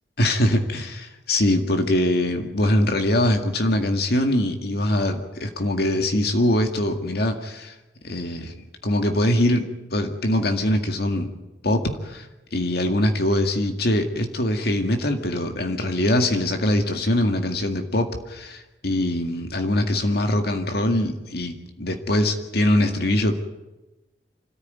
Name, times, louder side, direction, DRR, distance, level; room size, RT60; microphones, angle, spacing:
voice 1, 0.2-7.8 8.0-8.5 8.8-11.3 11.6-23.3, left 1 dB, 65° left, 5 dB, 2.0 m, -23 dB
26.0 x 14.5 x 9.4 m, 1.0 s
head